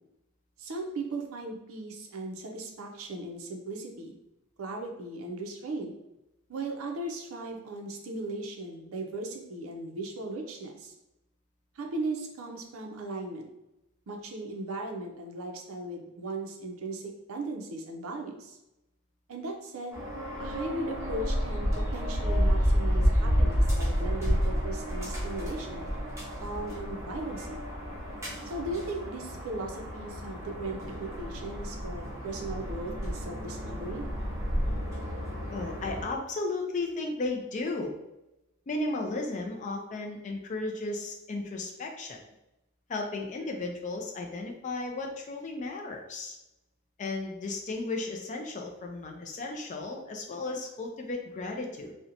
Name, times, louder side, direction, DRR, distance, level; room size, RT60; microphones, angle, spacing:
voice 1, 0.6-4.2 4.6-5.9 6.5-10.9 11.8-13.5 14.1-18.6 19.3-20.0 20.4-25.9 26.4-27.6 28.5-34.0, right 2 dB, 65° right, 2 dB, 0.4 m, -37 dB
sound 1, 19.9-36.0, equal, 15° right, 0.7 m, -30 dB
voice 2, 35.5-38.0 38.7-42.2 42.9-46.4 47.0-51.9, left 2 dB, 35° left, 2 dB, 0.3 m, -34 dB
2.7 x 2.1 x 2.5 m, 0.91 s
head